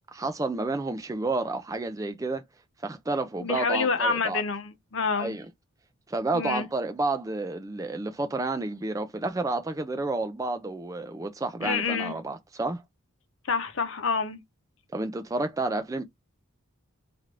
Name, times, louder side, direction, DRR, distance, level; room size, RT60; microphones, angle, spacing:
voice 1, 0.1-2.4 2.8-4.4 5.2-5.4 6.1-12.8 14.9-16.0, right 2 dB, 15° right, 0.3 m, -30 dB
voice 2, 3.4-5.4 6.3-6.7 11.6-12.1 13.5-14.4, left 4 dB, 55° left, 0.7 m, -27 dB
3.2 x 2.4 x 3.0 m
head